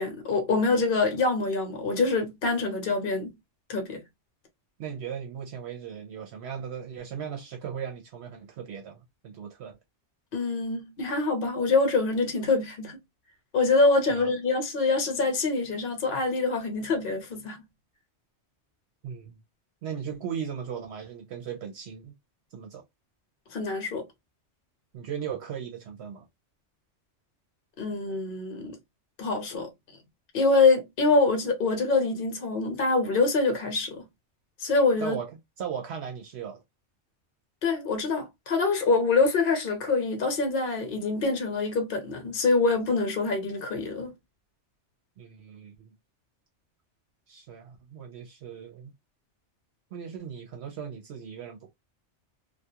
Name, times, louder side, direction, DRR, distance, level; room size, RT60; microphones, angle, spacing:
voice 1, 0.0-3.3 3.7-4.0 10.3-13.0 13.5-17.6 23.5-24.0 27.8-28.7 29.2-29.7 30.3-34.0 34.6-35.2 37.6-44.1, left 3 dB, 55° left, 0.9 m, -25 dB
voice 2, 4.8-9.7 14.1-14.3 19.0-19.4 19.8-22.1 22.5-22.8 24.9-26.3 35.0-35.3 35.6-36.6 45.2-45.9 47.3-48.9 49.9-51.7, right 7 dB, 70° right, 0.8 m, -37 dB
2.3 x 2.2 x 2.7 m
omnidirectional pair, 1.2 m